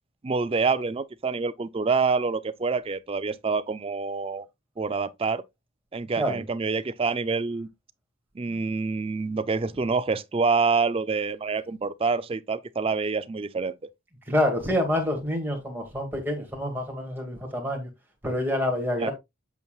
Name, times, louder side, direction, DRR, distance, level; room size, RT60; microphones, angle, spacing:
voice 1, 0.2-4.5 4.8-5.4 5.9-7.7 8.4-13.9 19.0-19.1, right 4 dB, 25° right, 0.3 m, -27 dB
voice 2, 14.3-17.9 18.2-19.1, left 1 dB, 10° right, 2.0 m, -27 dB
8.1 x 7.1 x 2.3 m
head